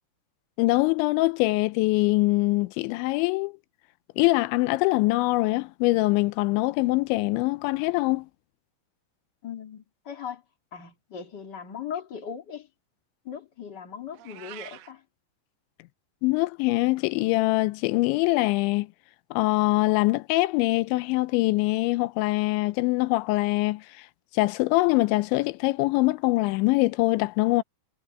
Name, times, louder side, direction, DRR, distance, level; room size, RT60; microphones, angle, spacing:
voice 1, 0.6-3.6 4.2-8.3 16.2-18.9 19.3-24.1 24.3-27.6, left 21 dB, 90° left, 3.0 m, -23 dB
voice 2, 9.4-10.4 10.7-12.7 13.2-15.0, left 7 dB, 50° left, 1.3 m, -38 dB
Meow, 14.1-14.9, right 14 dB, 75° right, 2.1 m, -44 dB
omnidirectional pair, 5.2 m